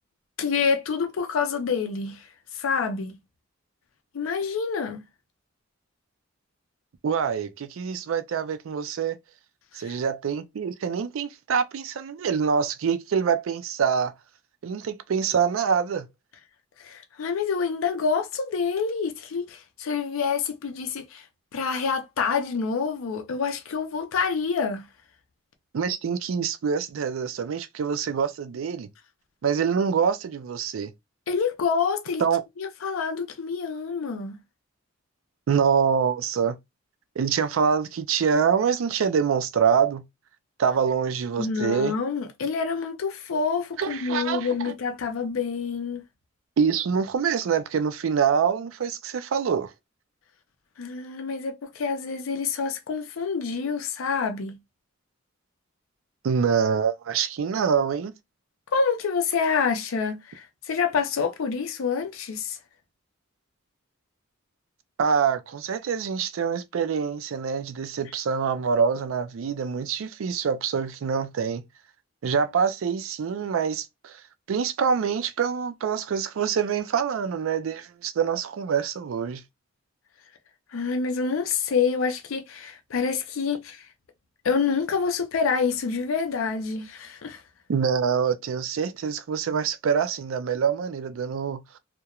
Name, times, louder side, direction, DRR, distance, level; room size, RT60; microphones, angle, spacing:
voice 1, 0.4-2.3 2.5-3.2 4.1-5.0 9.7-9.8 16.8-21.2 21.5-24.8 31.3-32.2 32.6-34.4 41.4-46.0 50.8-54.6 58.7-62.6 80.7-83.8 84.4-87.4, left 5 dB, 90° left, 0.4 m, -27 dB
voice 2, 7.0-9.2 9.7-14.1 14.6-16.1 25.7-28.9 29.4-30.9 32.2-32.4 35.5-36.6 37.2-40.0 40.6-41.9 43.8-44.7 46.6-49.7 56.2-58.1 65.0-71.7 72.2-74.2 74.5-79.4 87.7-91.8, right 6 dB, 85° right, 0.4 m, -25 dB
2.3 x 2.1 x 2.8 m
head